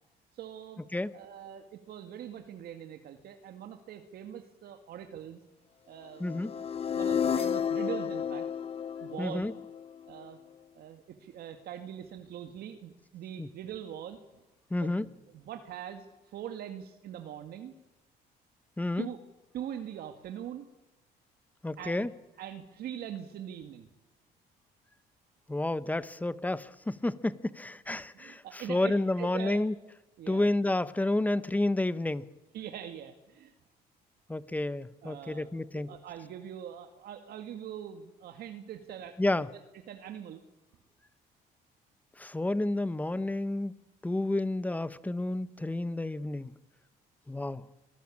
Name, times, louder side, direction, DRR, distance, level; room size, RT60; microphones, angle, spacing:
voice 1, 0.3-0.8 1.1-5.4 5.9-6.2 6.5-6.7 6.9-8.5 9.0-9.5 10.1-10.4 10.7-14.2 14.8-17.7 19.0-19.2 19.5-20.7 21.8-22.1 22.4-23.9 27.9-29.6 30.2-30.5 32.5-33.5 35.0-35.5 35.7-39.3 39.9-40.4, right 10 dB, 65° right, 6 dB, 2.1 m, -42 dB
sound 1, 6.2-10.3, left 8 dB, 35° left, 0.8 m, -32 dB
voice 2, 6.2-6.5 9.2-9.5 13.4-13.5 14.7-15.1 18.8-19.1 21.6-22.1 25.5-29.8 30.3-32.3 34.3-35.9 39.2-39.5 42.2-43.7 44.0-46.5 47.3-47.6, left 2 dB, 10° left, 16 dB, 1.0 m, -30 dB
25.5 x 18.5 x 8.7 m, 0.94 s
cardioid pair, 110°, 17 cm